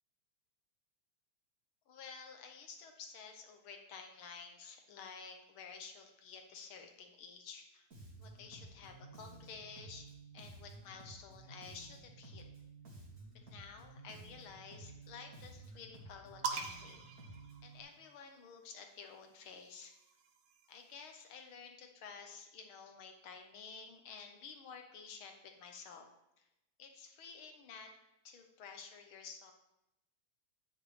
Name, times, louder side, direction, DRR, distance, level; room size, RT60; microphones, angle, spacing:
voice 1, 1.9-7.9 8.2-12.5 13.5-17.0 17.3-19.9 20.7-26.1 26.4-26.5 26.8-27.9 28.2-29.5, left 5 dB, 70° left, 4 dB, 1.2 m, -52 dB
Bass guitar, 7.9-17.8, right 2 dB, 30° right, 2.2 m, -54 dB
sound 1, 16.4-18.2 19.4-21.0, right 5 dB, 70° right, 1.5 m, -44 dB
13.5 x 9.0 x 3.3 m, 0.88 s
omnidirectional pair, 3.7 m